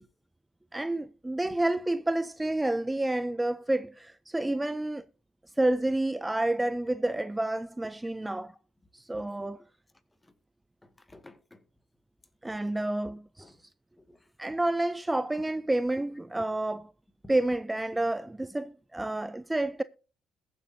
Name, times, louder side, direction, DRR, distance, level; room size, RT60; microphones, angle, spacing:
voice 1, 0.7-5.0 5.6-8.5 8.9-9.6 12.4-13.5 14.4-16.9 17.3-19.8, right 1 dB, 15° right, 0.4 m, -29 dB
voice 2, 10.8-11.7 12.4-12.8 13.4-13.6 14.0-14.3 17.2-17.4 19.0-19.2, left 1 dB, 15° left, 1.9 m, -54 dB
21.5 x 7.7 x 2.7 m
hypercardioid pair, 50°, 0 cm